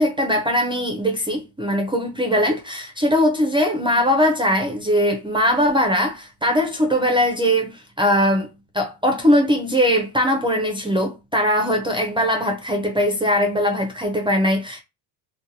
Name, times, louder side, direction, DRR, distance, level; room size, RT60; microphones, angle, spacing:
voice 1, 0.0-14.8, equal, 10° right, 0.3 m, -20 dB
2.6 x 2.1 x 2.6 m
cardioid pair, 105°, 46 cm